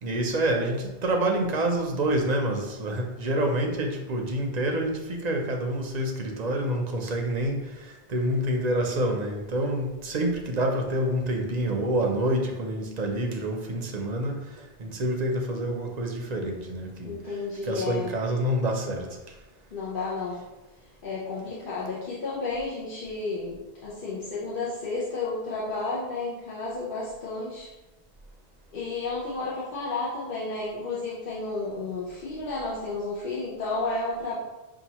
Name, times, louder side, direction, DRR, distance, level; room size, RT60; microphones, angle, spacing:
voice 1, 0.0-17.1 17.6-19.1, right 1 dB, 50° right, 2 dB, 0.6 m, -27 dB
voice 2, 17.0-18.2 19.7-20.4 21.0-27.7 28.7-34.4, left 3 dB, 55° left, -7 dB, 0.9 m, -32 dB
5.6 x 2.4 x 2.9 m, 1.1 s
omnidirectional pair, 1.1 m